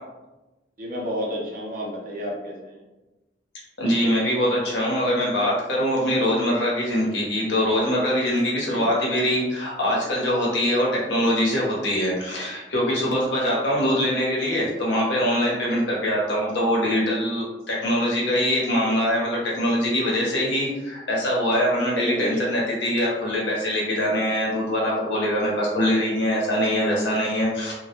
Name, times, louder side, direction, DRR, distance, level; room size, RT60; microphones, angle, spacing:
voice 1, 0.8-2.8 8.7-8.9 13.5-13.9 21.9-22.5, equal, 50° right, -2 dB, 0.6 m, -31 dB
voice 2, 3.8-27.7, equal, 75° left, -4 dB, 0.8 m, -23 dB
2.2 x 2.1 x 2.8 m, 1.1 s
head